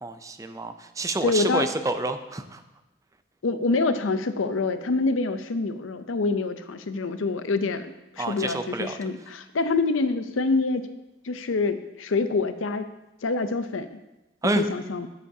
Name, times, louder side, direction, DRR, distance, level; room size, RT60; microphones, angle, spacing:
voice 1, 0.0-2.6 8.2-9.0 14.4-14.6, right 2 dB, 15° right, 9 dB, 0.4 m, -28 dB
voice 2, 1.2-1.7 3.4-10.9 11.2-12.9 13.2-14.0 14.4-15.1, left 3 dB, 85° left, 10 dB, 0.6 m, -26 dB
13.0 x 7.1 x 2.8 m, 0.99 s
head